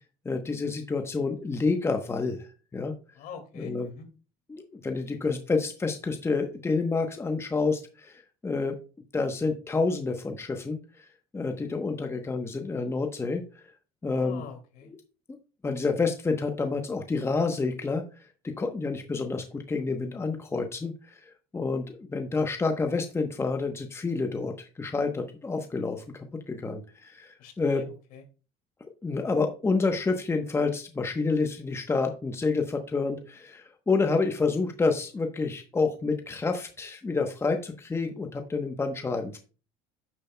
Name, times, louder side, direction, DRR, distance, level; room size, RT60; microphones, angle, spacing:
voice 1, 0.2-2.9 3.6-3.9 4.5-8.8 9.1-11.1 11.3-13.6 14.0-14.4 14.9-15.0 15.6-18.0 18.4-20.9 21.2-26.0 26.5-27.8 29.0-39.4, left 4 dB, 15° left, 5 dB, 1.0 m, -28 dB
voice 2, 3.2-4.1 14.1-14.9 27.4-28.2, left 6 dB, 65° left, 6 dB, 2.4 m, -44 dB
9.8 x 7.0 x 2.3 m, 0.34 s
supercardioid pair, 105°, 16 cm